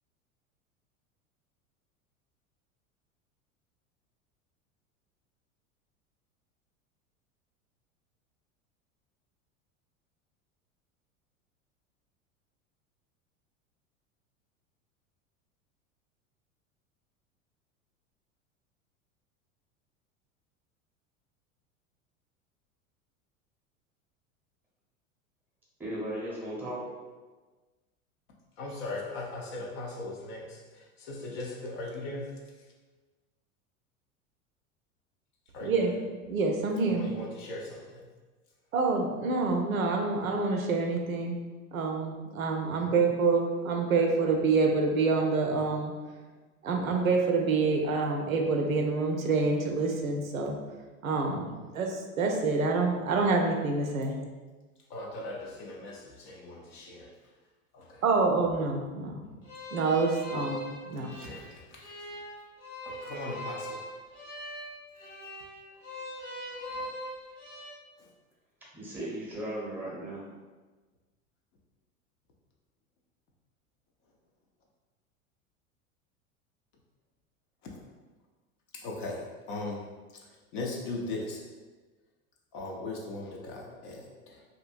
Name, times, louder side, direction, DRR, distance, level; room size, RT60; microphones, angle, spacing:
voice 1, 25.8-26.8 68.7-70.3, right 1 dB, 5° right, -5 dB, 0.8 m, -36 dB
voice 2, 28.6-32.4 35.5-35.9 36.9-38.1 42.8-42.9 54.9-57.2 57.7-58.0 60.3-60.5 60.9-62.2 62.9-63.9 66.7-66.8 68.0-68.1 77.6-77.8 78.7-79.9 80.2-81.5 82.5-84.4, left 2 dB, 40° left, -1 dB, 0.5 m, -39 dB
voice 3, 35.6-37.3 38.7-41.4 41.7-45.9 46.6-50.6 51.0-54.2 58.0-59.2 59.7-61.1, right 4 dB, 80° right, 2 dB, 0.5 m, -27 dB
sound 1, 59.4-67.7, equal, 70° left, 0.9 m, -41 dB
2.7 x 2.6 x 2.5 m, 1.3 s
figure-of-eight pair, 80°, 41 cm